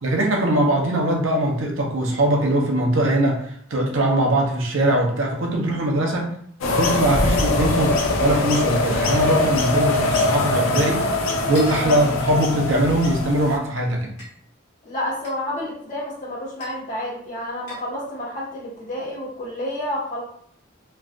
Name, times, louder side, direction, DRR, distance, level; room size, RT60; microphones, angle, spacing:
voice 1, 0.0-6.4 6.7-11.1 11.5-14.1, right 1 dB, 75° right, 0 dB, 0.7 m, -21 dB
sound 1, 6.6-13.6, left 2 dB, 75° left, 0.5 m, -22 dB
sound 2, 11.5-11.9 13.0-13.1 14.2-14.3 15.2-15.4 16.6-16.8 17.7-17.9, left 1 dB, 60° left, 1.4 m, -39 dB
voice 2, 14.8-20.2, left 1 dB, 40° left, -8 dB, 1.3 m, -30 dB
3.1 x 2.4 x 2.5 m, 0.63 s
head